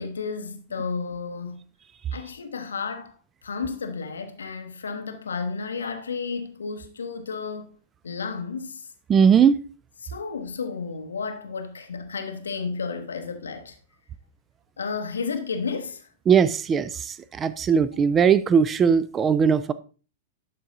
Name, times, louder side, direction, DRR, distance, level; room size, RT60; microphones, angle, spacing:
voice 1, 0.0-1.6 2.1-3.2 3.4-7.7 8.0-8.9 10.0-13.8 14.8-16.1, left 5 dB, 70° left, 0.7 m, -32 dB
voice 2, 9.1-9.6 16.3-19.7, right 7 dB, 20° right, 0.4 m, -19 dB
12.0 x 4.8 x 2.6 m
figure-of-eight pair, 100°, 0 cm